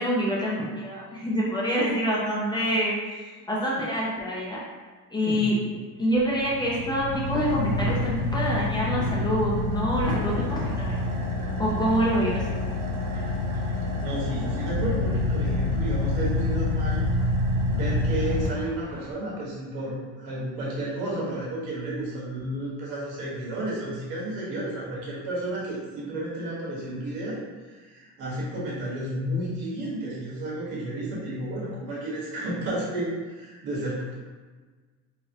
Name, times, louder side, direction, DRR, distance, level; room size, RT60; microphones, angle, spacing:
voice 1, 0.0-4.6 5.1-5.6 6.0-11.0 11.6-12.6, equal, 15° left, -6 dB, 0.4 m, -26 dB
voice 2, 5.2-5.8 13.1-13.3 13.6-17.1 17.7-27.4 27.7-34.1, right 1 dB, 85° right, -6 dB, 1.5 m, -32 dB
Car / Idling, 6.2-19.1, left 2 dB, 70° right, 0.7 m, -27 dB
3.9 x 2.1 x 2.8 m, 1.4 s
cardioid pair, 155°, 34 cm